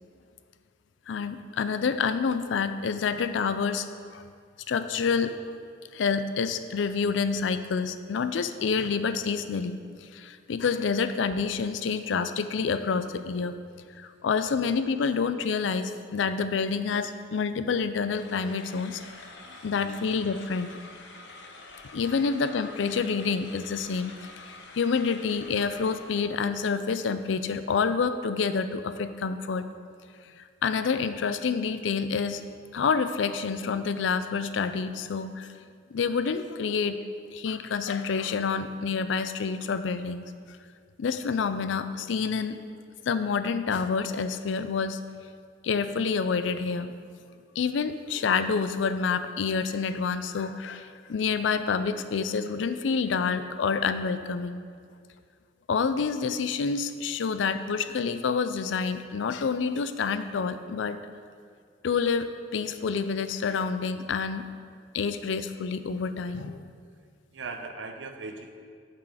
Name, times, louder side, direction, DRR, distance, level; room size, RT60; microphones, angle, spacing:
voice 1, 1.1-3.9 4.1-4.2 4.7-5.4 5.9-13.6 14.0-19.0 19.6-20.7 21.9-24.1 24.4-29.7 30.4-32.4 32.7-35.5 35.9-37.0 37.3-40.3 41.0-42.6 43.1-45.0 45.6-46.9 47.6-54.6 55.7-61.0 61.8-64.5 64.9-66.6, left 5 dB, 85° left, 12 dB, 0.4 m, -28 dB
sound 1, 18.0-26.5, left 3 dB, 70° left, 0.8 m, -47 dB
voice 2, 67.3-68.5, right 3 dB, 80° right, 5 dB, 0.7 m, -39 dB
7.4 x 6.2 x 4.8 m, 2.2 s
head